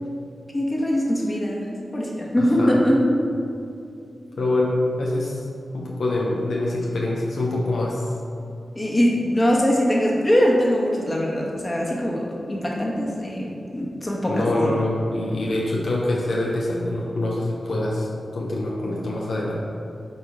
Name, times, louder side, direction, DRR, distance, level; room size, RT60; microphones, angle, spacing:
voice 1, 0.5-1.7 1.9-3.1 8.7-14.7, equal, 30° left, -3 dB, 1.4 m, -22 dB
voice 2, 2.4-2.8 4.4-5.4 5.7-8.0 14.3-18.1 18.3-19.6, left 1 dB, 75° left, -3 dB, 0.9 m, -25 dB
8.2 x 2.9 x 5.1 m, 2.6 s
cardioid pair, 55°, 0 cm